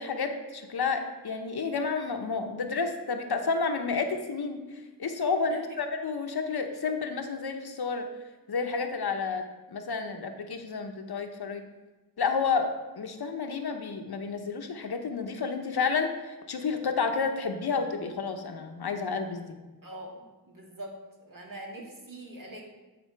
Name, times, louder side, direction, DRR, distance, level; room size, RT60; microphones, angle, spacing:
voice 1, 0.0-8.1 8.5-11.6 12.2-19.6, left 5 dB, 75° left, 6 dB, 0.9 m, -30 dB
voice 2, 19.8-20.2 20.5-20.9 21.3-22.6, right 1 dB, 55° right, -2 dB, 2.1 m, -42 dB
10.5 x 4.4 x 4.5 m, 1.2 s
cardioid pair, 50°, 39 cm